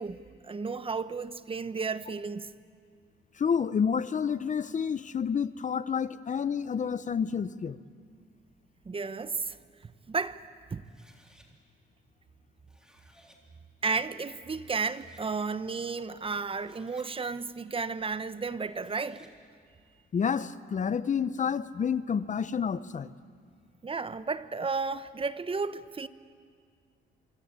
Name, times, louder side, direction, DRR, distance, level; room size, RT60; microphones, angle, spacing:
voice 1, 0.0-2.6 8.8-9.6 9.8-10.9 13.8-19.3 23.8-26.1, right 4 dB, 25° right, 0.9 m, -33 dB
voice 2, 3.4-7.8 20.1-23.1, left 7 dB, 40° left, 0.8 m, -29 dB
sound 1, 10.8-11.5 12.5-13.4 14.2-14.3 14.6-15.3 16.3-17.1 18.6-19.4, equal, 5° right, 3.6 m, -60 dB
25.0 x 24.5 x 8.8 m
cardioid pair, 90°, 20 cm